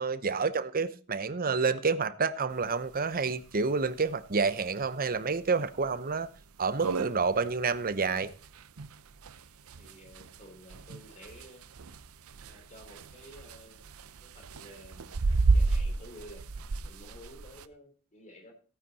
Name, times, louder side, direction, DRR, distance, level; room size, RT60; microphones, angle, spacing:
voice 1, 0.0-6.3 6.6-8.3, right 4 dB, 40° right, 0.8 m, -29 dB
sound 1, 2.6-2.7 3.0-3.1 3.4-3.5 4.1-4.3 4.8-4.9 5.4-5.5 5.8-5.9 6.4-6.5 6.6-17.7, right 3 dB, 70° right, 0.7 m, -32 dB
voice 2, 9.8-11.6 12.5-13.9 14.2-15.1 15.5-16.4 16.8-18.5, left 1 dB, 35° left, 3.7 m, -52 dB
15.0 x 9.2 x 4.2 m
head